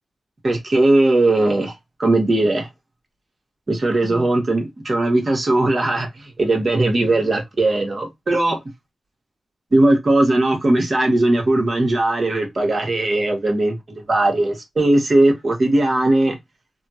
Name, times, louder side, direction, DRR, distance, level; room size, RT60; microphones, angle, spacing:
voice 1, 0.4-1.7 2.0-2.7 3.7-8.6 9.7-16.4, right 2 dB, 45° right, 1.5 m, -18 dB
3.5 x 2.3 x 2.8 m
cardioid pair, 65°, 0 cm